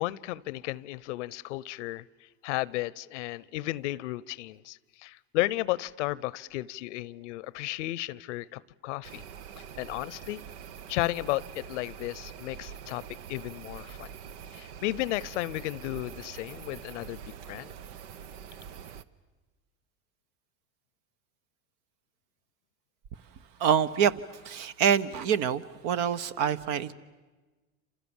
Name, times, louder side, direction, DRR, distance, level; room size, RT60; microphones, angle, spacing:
voice 1, 0.0-2.0 2.4-9.2 9.8-10.4 10.9-14.1 14.5-17.2 17.5-17.7, left 18 dB, 85° left, 23 dB, 0.8 m, -33 dB
sound 1, 9.0-19.0, right 8 dB, 85° right, 1.0 m, -45 dB
voice 2, 23.6-24.1 24.4-26.9, right 8 dB, 65° right, 14 dB, 1.3 m, -26 dB
29.0 x 27.5 x 7.2 m, 1.3 s
supercardioid pair, 105°, 35 cm